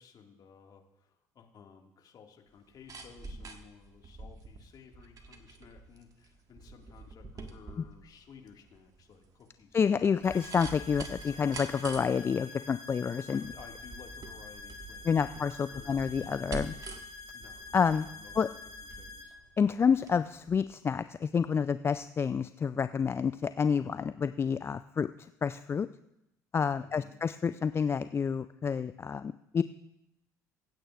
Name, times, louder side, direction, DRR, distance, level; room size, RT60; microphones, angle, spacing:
voice 1, 0.0-10.2 13.3-16.4 17.3-17.6 18.1-18.7 19.0-19.4 26.8-27.2, left 6 dB, 45° left, 2 dB, 1.9 m, -55 dB
sound 1, 2.5-20.2 20.5-20.6, right 3 dB, 40° right, 1.6 m, -46 dB
voice 2, 9.7-13.4 15.1-16.8 17.7-18.1 18.4-18.5 19.6-25.1 25.4-25.9 26.5-29.6, left 6 dB, 25° left, 13 dB, 0.3 m, -29 dB
sound 2, 10.2-19.2, left 4 dB, 75° left, 2.0 m, -47 dB
25.0 x 8.9 x 2.4 m, 0.87 s
figure-of-eight pair, 60°, 9 cm